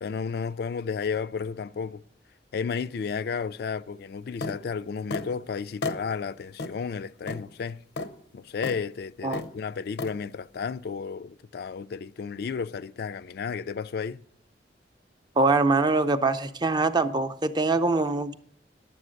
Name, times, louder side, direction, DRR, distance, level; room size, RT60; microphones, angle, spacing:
voice 1, 0.0-2.0 2.5-7.8 8.3-14.2, left 5 dB, 60° left, 0.3 m, -32 dB
sound 1, 4.4-4.6 5.1-5.3 5.8-6.0 6.6-6.7 7.3-7.4 8.0-8.1 8.6-8.8 9.3-9.5 10.0-10.1, left 3 dB, 85° left, 0.8 m, -32 dB
voice 2, 15.4-18.3, right 3 dB, 25° right, 0.5 m, -23 dB
11.0 x 7.5 x 6.3 m
head